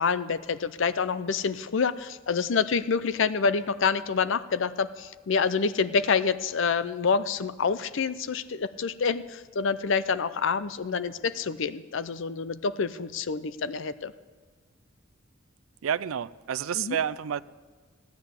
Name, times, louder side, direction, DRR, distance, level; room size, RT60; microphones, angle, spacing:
voice 1, 0.0-14.1 16.8-17.0, left 5 dB, 65° left, 0.6 m, -27 dB
voice 2, 15.8-17.4, right 8 dB, 85° right, 0.4 m, -29 dB
15.0 x 10.5 x 8.1 m
head